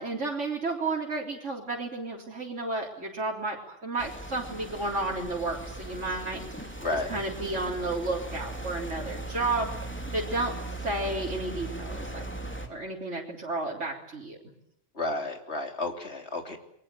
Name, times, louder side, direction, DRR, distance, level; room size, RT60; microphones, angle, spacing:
voice 1, 0.0-6.8 7.1-9.7 10.1-12.2 12.7-14.4, right 2 dB, 80° right, -3 dB, 4.0 m, -32 dB
sound 1, 4.0-12.7, right 2 dB, 10° left, 3.0 m, -38 dB
voice 2, 15.0-16.6, left 2 dB, 65° left, 4 dB, 3.7 m, -31 dB
28.5 x 22.5 x 7.7 m, 0.75 s
omnidirectional pair, 1.2 m